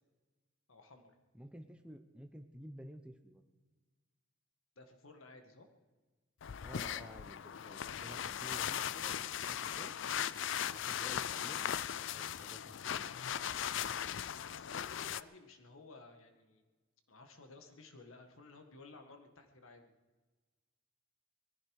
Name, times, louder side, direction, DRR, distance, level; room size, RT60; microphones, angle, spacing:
voice 1, 0.7-1.2 4.8-5.7 14.5-16.6 17.1-19.9, left 3 dB, 75° left, 5 dB, 1.8 m, -56 dB
voice 2, 1.3-3.4 6.6-10.0 10.7-11.8 12.1-13.1, equal, 5° right, 6 dB, 0.9 m, -53 dB
sound 1, 6.4-15.2, left 9 dB, 60° left, 0.4 m, -38 dB
20.0 x 14.5 x 4.9 m, 1.3 s
head